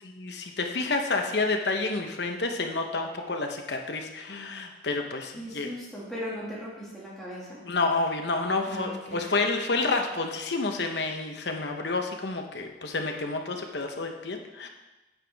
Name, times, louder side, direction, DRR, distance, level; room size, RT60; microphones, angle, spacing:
voice 1, 0.0-5.7 7.6-14.7, left 3 dB, 65° left, 3 dB, 1.0 m, -29 dB
voice 2, 5.4-7.6 8.7-9.4, equal, ahead, -8 dB, 2.2 m, -38 dB
9.2 x 7.7 x 3.6 m, 1.1 s
head